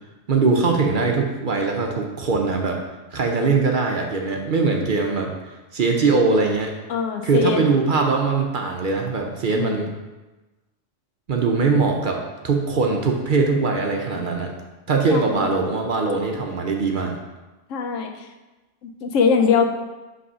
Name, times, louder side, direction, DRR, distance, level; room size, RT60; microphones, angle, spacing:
voice 1, 0.3-2.8 3.1-5.3 5.7-6.7 7.2-9.9 11.3-14.5 14.9-17.2, right 4 dB, 50° right, 2 dB, 0.7 m, -21 dB
voice 2, 6.9-7.6 9.5-9.8 15.1-15.5 17.7-18.3 18.8-19.7, left 6 dB, 90° left, 4 dB, 1.0 m, -22 dB
5.3 x 3.3 x 5.5 m, 1.1 s
omnidirectional pair, 1.3 m